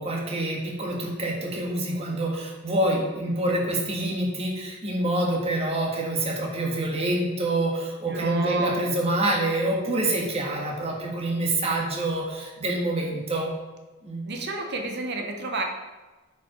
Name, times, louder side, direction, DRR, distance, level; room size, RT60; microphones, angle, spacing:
voice 1, 0.0-13.5 14.0-14.2, right 1 dB, 30° right, -1 dB, 1.7 m, -26 dB
voice 2, 8.1-8.8 14.3-15.6, right 3 dB, 55° right, 4 dB, 1.0 m, -30 dB
8.6 x 5.2 x 5.0 m, 1.2 s
head